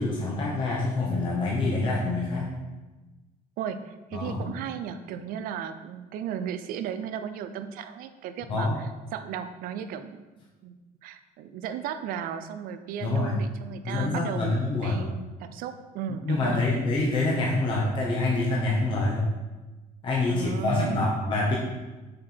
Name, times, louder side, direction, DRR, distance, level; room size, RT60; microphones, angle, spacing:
voice 1, 0.0-2.5 4.1-4.6 8.5-8.8 13.0-13.4 13.8-15.1 16.2-19.3 20.0-21.6, left 2 dB, 30° left, -4 dB, 0.9 m, -26 dB
voice 2, 3.6-8.7 9.1-10.2 10.6-10.7 11.0-15.1 15.4-16.6 20.3-21.0, right 8 dB, 65° right, 10 dB, 0.5 m, -35 dB
6.4 x 4.6 x 4.3 m, 1.2 s
cardioid pair, 160°, 16 cm